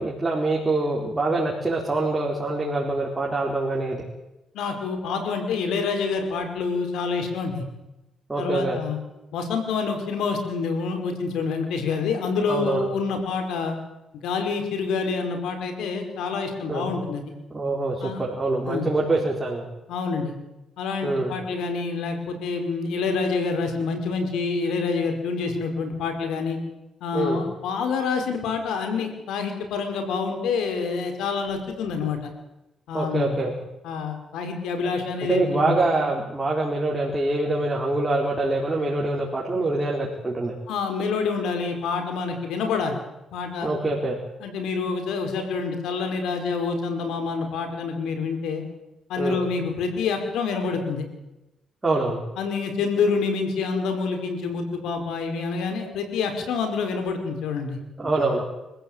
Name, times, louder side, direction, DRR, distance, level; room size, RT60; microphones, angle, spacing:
voice 1, 0.0-4.0 5.0-5.2 8.3-8.8 12.5-12.9 16.7-16.9 17.5-19.7 21.0-21.3 27.1-27.4 32.9-33.5 35.3-40.6 43.6-44.2 49.2-49.4 51.8-52.2 58.0-58.4, right 2 dB, 15° right, -2 dB, 4.4 m, -25 dB
voice 2, 4.5-7.6 8.4-9.0 9.3-13.8 14.2-17.2 18.0-18.2 18.7-18.9 19.9-20.3 20.8-26.6 27.0-32.3 32.9-33.4 33.8-35.8 40.7-43.0 43.3-43.7 44.4-48.6 49.1-51.0 52.4-57.8, left 5 dB, 85° left, 5 dB, 5.2 m, -27 dB
25.5 x 15.0 x 9.0 m, 0.98 s
cardioid pair, 95°, 0 cm